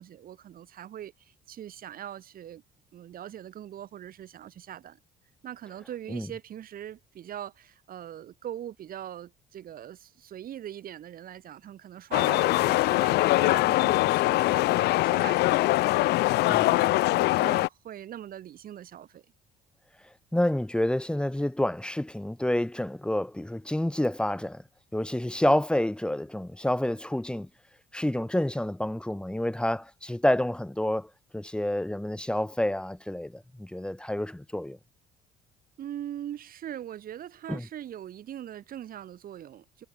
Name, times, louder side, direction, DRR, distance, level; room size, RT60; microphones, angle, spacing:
voice 1, 0.0-2.6 2.9-5.0 5.4-16.1 16.5-19.2 35.8-39.9, right 11 dB, 60° right, 7.3 m, -41 dB
sound 1, 12.1-17.7, left 19 dB, 75° left, 0.5 m, -23 dB
voice 2, 20.3-24.6 24.9-27.5 27.9-34.8 37.5-37.6, left 1 dB, 5° left, 3.9 m, -28 dB
cardioid pair, 110°, 17 cm